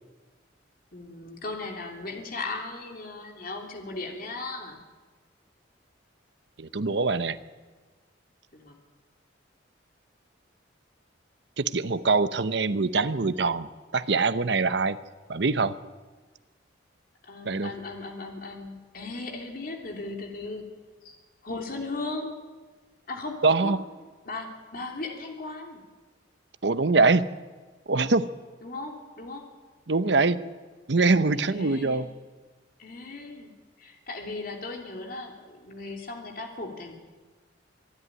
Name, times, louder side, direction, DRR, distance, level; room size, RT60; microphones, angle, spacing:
voice 1, 0.9-4.8 8.5-8.8 17.2-20.6 21.0-21.2 21.4-22.4 23.1-23.8 24.2-25.8 28.6-29.5 31.3-32.1 32.8-33.5 33.8-36.9, left 3 dB, 50° left, 2 dB, 3.0 m, -37 dB
voice 2, 6.6-7.4 11.6-15.0 15.3-15.7 17.4-17.7 23.4-23.8 26.6-27.2 27.9-28.3 29.9-30.4 30.9-32.1, right 3 dB, 65° right, 13 dB, 0.8 m, -23 dB
25.0 x 11.0 x 10.0 m, 1.4 s
head